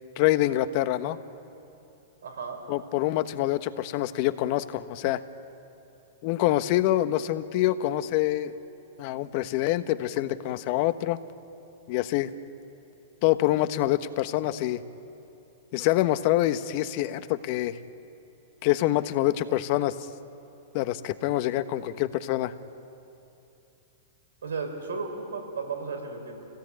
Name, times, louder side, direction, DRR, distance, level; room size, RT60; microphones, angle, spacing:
voice 1, 0.2-1.2 2.7-5.2 6.2-8.5 9.0-11.2 11.9-12.3 13.2-14.8 15.7-17.8 18.6-19.9 20.7-22.5, left 14 dB, 50° left, 11 dB, 1.2 m, -26 dB
voice 2, 2.2-2.6 24.4-26.4, right 4 dB, 85° right, 3 dB, 6.0 m, -34 dB
27.0 x 17.5 x 9.0 m, 2.8 s
hypercardioid pair, 115°, 0 cm